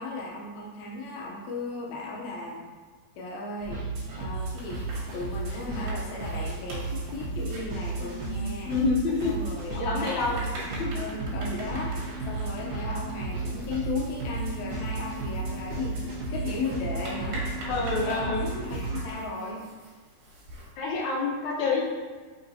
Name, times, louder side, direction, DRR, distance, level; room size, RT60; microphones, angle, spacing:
voice 1, 0.0-2.7 3.2-3.8 4.1-4.8 5.1-8.7 9.2-16.0 16.3-17.5 17.9-19.6, left 3 dB, 85° left, -2 dB, 1.6 m, -36 dB
sound 1, 3.6-19.1, right 3 dB, 65° right, 2.7 m, -33 dB
sound 2, 4.4-20.7, right 1 dB, 80° right, 3.5 m, -45 dB
voice 2, 8.0-9.3 9.7-10.4 10.7-10.9 17.6-18.6 20.8-21.8, left 4 dB, 65° left, -4 dB, 2.0 m, -28 dB
6.8 x 5.4 x 2.7 m, 1.5 s
omnidirectional pair, 4.3 m